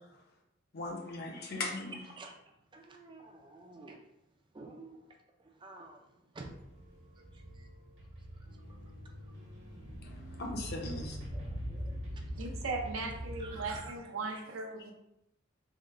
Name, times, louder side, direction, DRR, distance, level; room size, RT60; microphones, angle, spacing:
voice 1, 0.7-2.0 10.4-11.2, left 2 dB, 50° left, 0 dB, 0.7 m, -38 dB
voice 2, 2.7-4.0 4.5-5.0 5.6-6.0 6.3-6.5 7.5-7.7 11.3-12.4 13.4-13.6 14.3-14.4, right 3 dB, 25° right, 3 dB, 0.4 m, -50 dB
sound 1, 6.4-13.8, equal, 60° right, 1.0 m, -43 dB
voice 3, 12.3-14.9, right 3 dB, 75° right, 3 dB, 0.6 m, -38 dB
3.6 x 2.1 x 3.2 m, 0.84 s
head